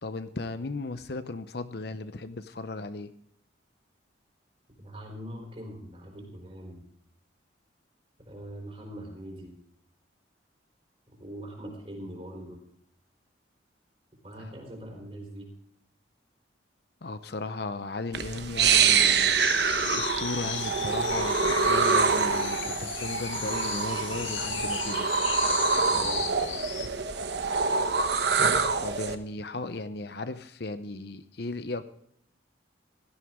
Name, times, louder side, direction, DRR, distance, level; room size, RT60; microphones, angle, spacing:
voice 1, 0.0-3.1 14.4-14.5 17.0-19.3 19.9-25.2 28.8-31.8, left 3 dB, 55° left, 11 dB, 0.7 m, -36 dB
voice 2, 4.8-6.8 8.3-9.5 11.1-12.6 14.2-15.5 25.9-26.6, equal, 30° right, 1 dB, 4.0 m, -42 dB
sound 1, 18.1-29.2, right 5 dB, 60° right, 1.1 m, -25 dB
sound 2, 19.4-26.9, left 7 dB, 85° left, 1.9 m, -35 dB
16.5 x 12.5 x 3.7 m, 0.68 s
head